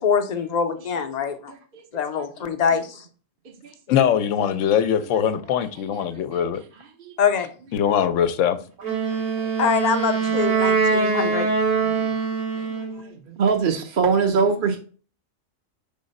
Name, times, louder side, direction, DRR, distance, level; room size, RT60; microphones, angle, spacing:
voice 1, 0.0-1.5 1.9-3.0 7.2-7.5 9.6-11.5, left 6 dB, 40° left, 0.6 m, -24 dB
voice 2, 3.9-6.6 7.7-8.6, left 9 dB, 70° left, 0.9 m, -21 dB
Wind instrument woodwind instrument, 8.8-13.0, right 4 dB, 65° right, 1.8 m, -23 dB
voice 3, 12.6-14.8, right 5 dB, 50° right, 0.8 m, -23 dB
4.8 x 3.7 x 5.3 m
omnidirectional pair, 1.4 m